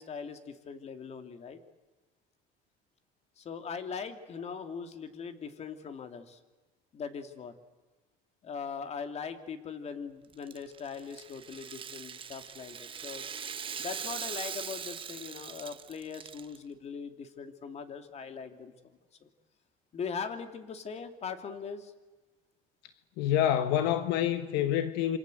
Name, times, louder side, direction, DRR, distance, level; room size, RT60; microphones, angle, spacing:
voice 1, 0.0-1.6 3.4-6.4 6.9-7.5 8.4-13.3 13.8-18.7 19.2-19.3 19.9-21.9, left 6 dB, 40° left, 2.9 m, -40 dB
Rattle (instrument), 10.3-16.6, right 7 dB, 30° right, 1.2 m, -41 dB
voice 2, 23.2-25.2, left 11 dB, 75° left, 1.4 m, -27 dB
27.5 x 25.5 x 8.0 m
cardioid pair, 115°, 17 cm